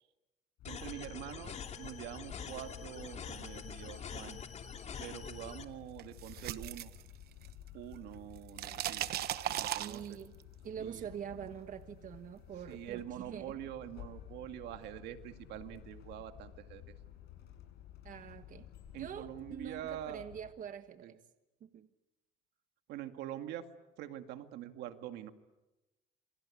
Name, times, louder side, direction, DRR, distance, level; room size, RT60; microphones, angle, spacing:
sound 1, 0.6-20.5, left 10 dB, 80° left, 7.1 m, -53 dB
sound 2, 0.6-5.6, left 6 dB, 40° left, 2.7 m, -45 dB
voice 1, 0.7-4.4 5.0-6.9 7.7-9.0 9.5-10.2 10.8-11.0 12.7-16.8 18.9-20.2 21.0-21.1 22.9-23.7 24.0-25.3, right 12 dB, 85° right, 8 dB, 2.1 m, -45 dB
sound 3, 6.0-7.7 8.0-10.4, right 12 dB, 65° right, 1.1 m, -38 dB
voice 2, 9.8-10.4 10.6-13.6 18.0-18.7 19.0-21.2 21.6-21.9, right 8 dB, 50° right, 9 dB, 1.4 m, -45 dB
28.0 x 24.0 x 8.6 m, 1.0 s
cardioid pair, 110°, 17 cm